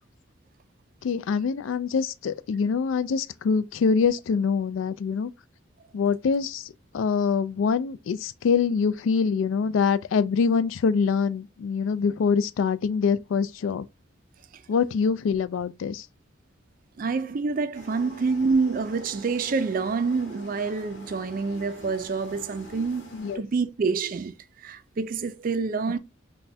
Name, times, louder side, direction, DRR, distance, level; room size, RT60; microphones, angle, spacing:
voice 1, 1.0-5.3 5.9-13.9 14.7-16.1 23.1-23.4, left 5 dB, 75° left, 0.3 m, -24 dB
voice 2, 17.0-23.1 23.4-24.3 24.6-26.0, right 4 dB, 45° right, 0.3 m, -27 dB
sound 1, 17.7-23.4, left 2 dB, 55° left, 0.9 m, -46 dB
3.3 x 2.2 x 4.0 m
head